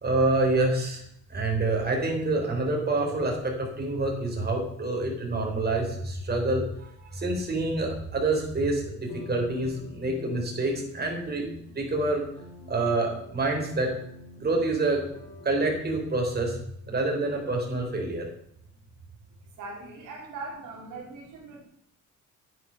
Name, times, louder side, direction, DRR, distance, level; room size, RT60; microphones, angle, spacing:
voice 1, 0.0-1.0 1.3-11.5 11.7-12.2 12.7-13.9 14.4-15.0 15.4-16.6 16.9-18.2, right 2 dB, 30° right, 1 dB, 3.9 m, -27 dB
sound 1, 9.1-16.1, left 2 dB, 85° left, 3.6 m, -46 dB
voice 2, 19.6-21.6, right 3 dB, 85° right, -1 dB, 3.5 m, -40 dB
9.5 x 8.8 x 5.7 m, 0.72 s
cardioid pair, 90°, 30 cm